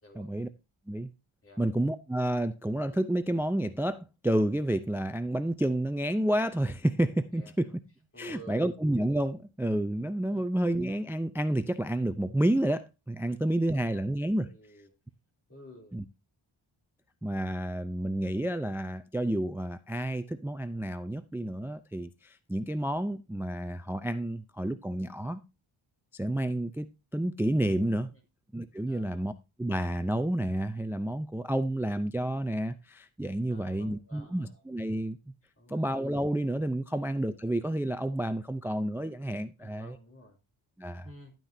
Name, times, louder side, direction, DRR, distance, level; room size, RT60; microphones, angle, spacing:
voice 1, 0.2-0.5 0.9-1.1 1.6-7.7 8.2-14.5 15.9-16.0 17.2-25.4 26.1-26.9 27.1-28.1 28.5-29.3 29.6-35.2 35.7-40.0 40.8-41.1, right 1 dB, 5° right, 0.4 m, -30 dB
voice 2, 7.3-7.7 8.1-8.7 10.3-10.5 13.2-13.4 13.7-14.1 14.4-14.9 15.5-15.9 28.1-28.2 28.9-29.2 33.5-34.6 35.6-35.9 36.9-37.0 39.6-40.4 41.0-41.3, equal, 25° left, 3.1 m, -52 dB
11.5 x 9.2 x 2.7 m
wide cardioid pair, 135°, 50 cm